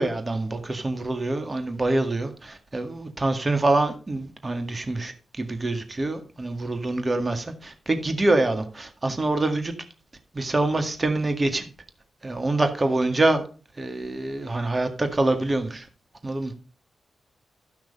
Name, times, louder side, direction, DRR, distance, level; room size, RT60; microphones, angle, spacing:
voice 1, 0.0-9.7 10.3-11.7 12.2-13.4 13.8-15.9 16.2-16.6, right 2 dB, 35° right, 7 dB, 1.8 m, -25 dB
12.5 x 5.9 x 5.4 m, 0.37 s
supercardioid pair, 50°, 0 cm